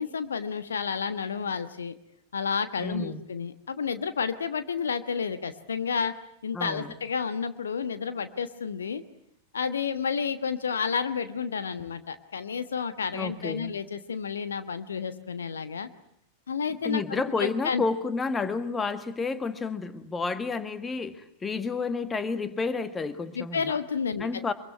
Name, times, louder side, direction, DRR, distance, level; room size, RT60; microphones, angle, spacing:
voice 1, 0.0-1.9 2.3-6.1 6.4-9.0 9.5-15.9 16.5-17.8 23.3-24.3, left 6 dB, 70° left, 12 dB, 1.3 m, -31 dB
voice 2, 2.8-3.2 6.5-6.9 13.1-13.7 16.8-23.8 24.2-24.5, left 4 dB, 15° left, 12 dB, 1.7 m, -30 dB
24.5 x 23.0 x 9.5 m, 0.70 s
figure-of-eight pair, 90°, 0 cm